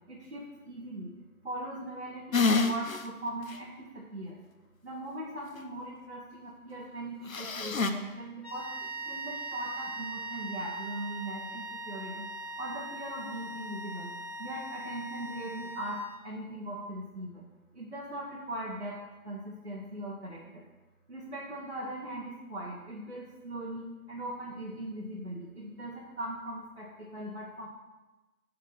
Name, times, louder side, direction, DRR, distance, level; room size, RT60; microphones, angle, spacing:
voice 1, 0.1-1.1 1.4-4.4 4.8-12.3 12.6-14.1 14.4-17.4 17.7-20.7 21.1-27.7, right 1 dB, 50° right, -5 dB, 1.0 m, -40 dB
sound 1, 2.3-3.0 3.5-3.6 7.3-7.9, left 3 dB, 65° left, 0.6 m, -27 dB
sound 2, 8.4-16.3, right 2 dB, 45° left, 1.1 m, -40 dB
6.2 x 3.8 x 5.8 m, 1.1 s
figure-of-eight pair, 170°, 44 cm